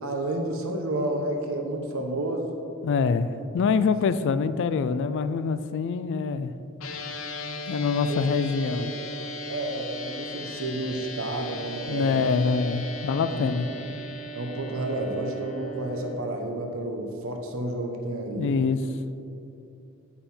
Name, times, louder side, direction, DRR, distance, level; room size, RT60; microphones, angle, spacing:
voice 1, 0.0-2.5 8.1-8.2 8.6-9.1 9.5-12.2 13.3-13.9 14.3-18.5, right 1 dB, 75° right, 3 dB, 0.9 m, -31 dB
voice 2, 2.8-6.5 7.7-8.9 11.9-13.7 18.4-18.8, left 5 dB, 60° left, 12 dB, 0.3 m, -25 dB
sound 1, 6.8-16.1, equal, 85° left, 0.8 m, -37 dB
9.6 x 5.6 x 4.3 m, 2.8 s
head